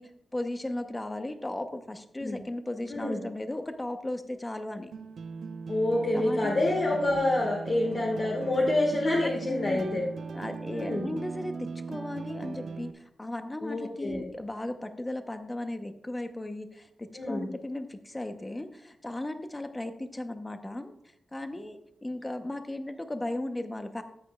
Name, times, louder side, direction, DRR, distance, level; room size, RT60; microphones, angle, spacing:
voice 1, 0.0-4.9 6.1-6.7 9.5-9.9 10.3-21.0 21.3-24.0, left 1 dB, 15° left, 7 dB, 0.8 m, -36 dB
voice 2, 2.9-3.2 5.7-10.0 10.7-11.1 13.6-14.2 17.1-17.5, left 2 dB, 45° left, -2 dB, 1.6 m, -27 dB
sound 1, 4.9-12.9, right 4 dB, 70° right, 0.6 m, -39 dB
13.5 x 8.5 x 2.3 m, 0.76 s
wide cardioid pair, 105°, 0 cm